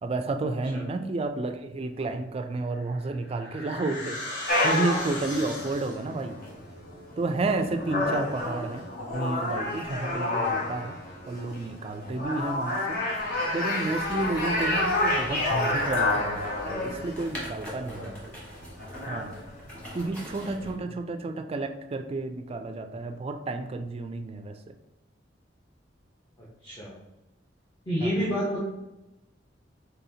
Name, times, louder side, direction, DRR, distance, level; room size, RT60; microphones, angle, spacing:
voice 1, 0.0-4.2 4.6-6.4 7.2-8.8 9.1-11.0 11.3-13.0 13.5-18.2 19.1-19.3 19.9-24.7 28.0-28.1, right 2 dB, 35° right, 7 dB, 0.3 m, -31 dB
sound 1, 2.7-6.2, left 2 dB, 75° left, 1.2 m, -37 dB
sound 2, 4.5-20.1, left 2 dB, 55° left, 1.0 m, -30 dB
sound 3, 13.9-20.7, equal, 5° left, 1.3 m, -43 dB
voice 2, 26.6-26.9 27.9-28.6, equal, 25° left, -6 dB, 0.9 m, -30 dB
4.1 x 4.0 x 2.8 m, 0.97 s
head